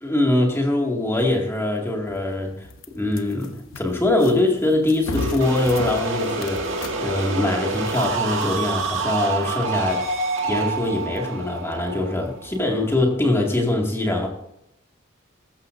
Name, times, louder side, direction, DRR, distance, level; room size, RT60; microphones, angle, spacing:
voice 1, 0.0-10.1 10.4-14.3, left 2 dB, 15° left, 0 dB, 2.1 m, -23 dB
sound 1, 2.1-13.0, left 2 dB, 80° left, 0.9 m, -39 dB
sound 2, 5.2-12.9, right 3 dB, 70° right, 2.1 m, -27 dB
15.0 x 13.0 x 2.6 m, 0.81 s
head